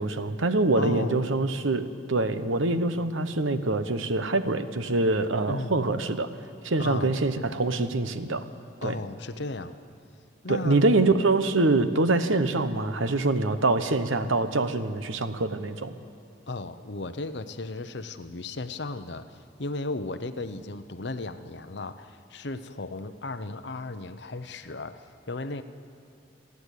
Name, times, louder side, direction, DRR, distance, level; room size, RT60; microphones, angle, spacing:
voice 1, 0.0-6.3 6.6-8.4 8.8-9.0 10.5-15.9, right 2 dB, 85° right, 11 dB, 1.0 m, -25 dB
voice 2, 0.8-1.2 5.5-5.8 6.8-7.1 8.8-9.8 10.4-10.8 16.5-25.6, left 2 dB, 60° left, 10 dB, 0.9 m, -35 dB
30.0 x 11.0 x 8.3 m, 2.5 s
head